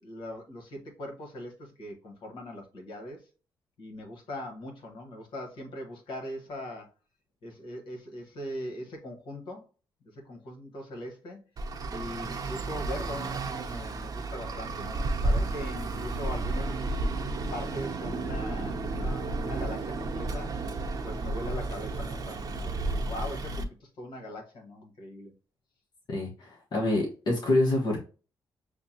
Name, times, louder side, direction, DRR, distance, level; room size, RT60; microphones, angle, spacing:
voice 1, 0.0-3.2 3.8-6.9 7.4-9.7 10.1-11.4 11.9-17.0 17.5-20.6 21.0-25.3, left 1 dB, 75° left, 1.6 m, -41 dB
Traffic noise roadway noise, 11.6-23.6, right 2 dB, 50° right, 0.8 m, -32 dB
voice 2, 26.1-28.0, left 2 dB, 55° left, 1.2 m, -26 dB
6.8 x 2.3 x 2.9 m
cardioid pair, 85°, 8 cm